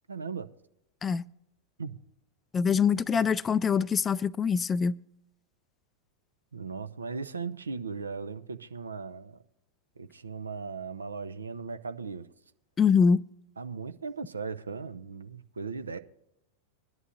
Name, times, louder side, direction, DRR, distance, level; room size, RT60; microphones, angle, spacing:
voice 1, 0.1-0.5 1.8-2.0 3.1-3.3 6.5-9.4 10.0-12.3 13.6-16.0, right 5 dB, 75° right, 0.7 m, -37 dB
voice 2, 2.5-5.0 12.8-13.2, left 6 dB, 20° left, 0.3 m, -24 dB
22.5 x 11.0 x 2.6 m
figure-of-eight pair, 90°, 0 cm